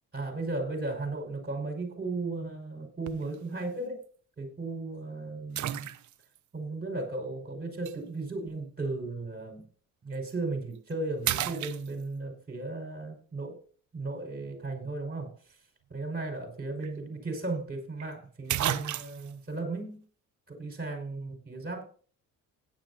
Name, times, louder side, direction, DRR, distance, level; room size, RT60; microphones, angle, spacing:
voice 1, 0.1-4.0 4.4-5.9 6.5-9.6 10.0-13.6 13.9-15.3 15.9-20.0 20.5-21.8, right 3 dB, 25° right, 4 dB, 5.5 m, -35 dB
sound 1, 3.1-3.4 4.0-4.1 5.5-6.4 7.8-8.0 10.1-10.3 10.7-10.9 11.2-12.3 16.4-16.5 16.8-16.9 18.0-18.1 18.5-19.3, right 11 dB, 55° right, 0.7 m, -32 dB
16.5 x 10.5 x 2.8 m, 0.42 s
cardioid pair, 90°, 35 cm